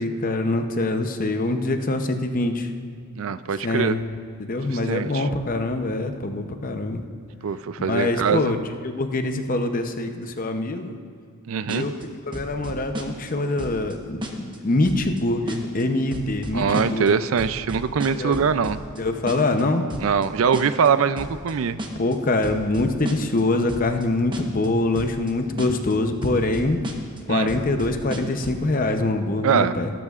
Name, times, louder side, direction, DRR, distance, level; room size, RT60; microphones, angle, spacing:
voice 1, 0.0-2.7 3.6-4.0 4.4-7.1 7.8-11.0 11.7-11.9 12.3-17.1 18.2-18.4 19.0-19.8 22.0-26.8 27.3-29.9, left 2 dB, 40° left, 6 dB, 0.7 m, -24 dB
voice 2, 3.1-3.9 4.7-5.3 7.4-8.5 11.5-11.9 16.5-18.8 20.0-21.8 27.3-27.5 29.4-29.8, right 6 dB, 65° right, 14 dB, 0.4 m, -22 dB
sound 1, 11.7-12.0 12.3-13.3 13.6-13.9 14.2-14.6 14.8-15.2 15.5-15.8 16.1-17.1 17.4-19.0 19.3-19.6 19.9-20.3 20.5-20.9 21.2-21.5 21.8-22.1 22.4-23.4 23.7-24.0 24.3-24.7 24.9-25.3 25.6-25.9 26.2-27.2 27.5-28.6, right 1 dB, 20° right, 1.0 m, -33 dB
20.0 x 12.0 x 2.4 m, 2.1 s
head